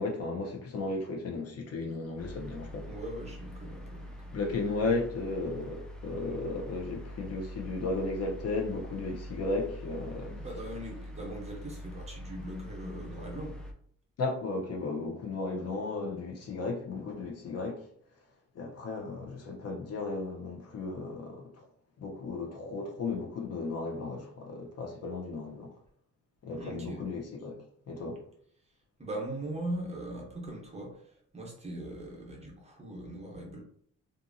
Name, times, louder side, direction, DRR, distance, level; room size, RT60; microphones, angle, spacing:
voice 1, 0.0-2.9 4.3-10.4 14.2-17.9 18.5-21.7 22.0-25.7 26.4-27.6 27.9-28.2, left 3 dB, 55° left, 0.6 m, -35 dB
sound 1, 2.2-13.7, equal, 5° left, 0.3 m, -44 dB
voice 2, 2.9-4.4 10.4-13.6 26.5-27.0 28.6-33.6, right 1 dB, 20° right, 0.8 m, -40 dB
2.7 x 2.5 x 2.5 m
cardioid pair, 120°, 30 cm